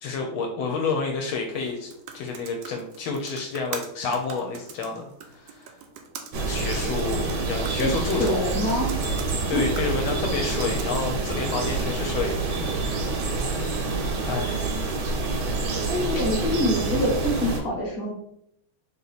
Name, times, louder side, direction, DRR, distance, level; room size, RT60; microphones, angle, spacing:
voice 1, 0.0-5.7 6.5-8.4 9.5-13.2 14.2-14.7, left 4 dB, 75° left, 2 dB, 1.3 m, -30 dB
sound 1, 1.5-12.1, right 6 dB, 90° right, 0.9 m, -43 dB
sound 2, 6.3-17.6, right 3 dB, 65° right, 1.2 m, -27 dB
voice 2, 7.8-8.9 9.5-9.6 15.9-18.1, left 1 dB, 40° left, -1 dB, 1.1 m, -25 dB
3.4 x 2.9 x 3.9 m, 0.73 s
omnidirectional pair, 2.4 m